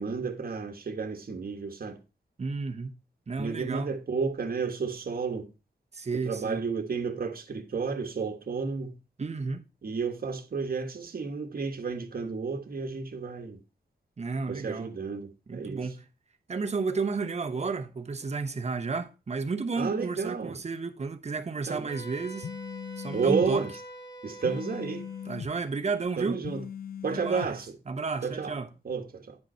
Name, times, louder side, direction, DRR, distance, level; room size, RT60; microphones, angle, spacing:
voice 1, 0.0-2.0 3.4-5.5 6.1-9.0 9.8-13.6 14.5-15.9 19.8-20.6 21.7-22.0 23.1-23.7 24.2-25.1 26.2-26.6 27.0-27.8 28.2-28.5 28.8-29.4, right 5 dB, 55° right, 1.3 m, -31 dB
voice 2, 2.4-3.0 3.3-3.9 5.9-6.6 9.2-9.6 14.2-14.9 15.5-16.1 16.5-22.5 23.0-23.6 25.2-26.4 27.1-27.6 27.9-28.7, right 4 dB, 40° right, 0.9 m, -32 dB
Wind instrument woodwind instrument, 21.9-25.3, right 1 dB, 30° left, 1.9 m, -45 dB
sound 1, 22.4-23.5 24.4-25.5 26.4-27.5, left 8 dB, 55° left, 0.5 m, -39 dB
9.6 x 5.1 x 4.4 m
wide cardioid pair, 125°, 18 cm